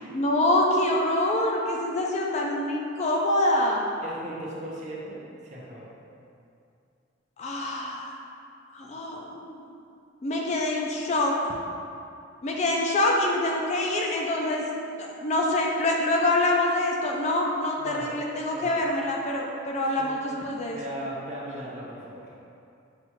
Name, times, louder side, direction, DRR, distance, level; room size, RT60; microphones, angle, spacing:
voice 1, 0.1-3.9 7.4-8.1 8.7-9.6 10.2-11.3 12.4-14.6 15.0-20.8, left 1 dB, 35° left, -1 dB, 0.4 m, -25 dB
voice 2, 4.0-5.9 17.8-18.2 18.5-18.8 20.0-20.1 20.7-22.3, right 1 dB, 40° right, -4 dB, 0.6 m, -38 dB
5.7 x 2.3 x 3.0 m, 2.5 s
head